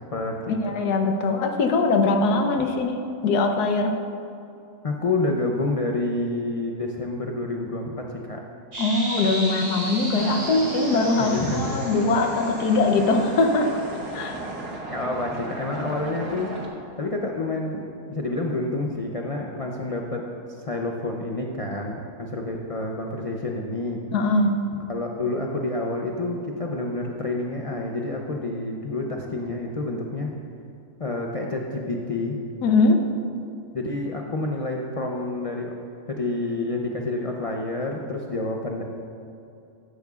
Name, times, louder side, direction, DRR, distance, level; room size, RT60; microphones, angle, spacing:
voice 1, 0.6-3.9 8.8-13.7 14.1-14.4 24.1-24.5 32.6-33.0, left 3 dB, 85° left, 4 dB, 1.4 m, -21 dB
voice 2, 4.8-8.4 11.2-11.8 14.9-16.5 17.0-20.3 20.6-24.0 24.9-30.4 31.0-32.4 33.7-35.7 36.1-38.8, left 2 dB, 50° left, 0 dB, 0.4 m, -28 dB
sound 1, 8.7-14.6, right 1 dB, 65° right, 3.4 m, -35 dB
sound 2, 10.1-16.7, right 2 dB, 85° right, 1.9 m, -35 dB
14.0 x 10.5 x 2.4 m, 2.7 s
omnidirectional pair, 1.7 m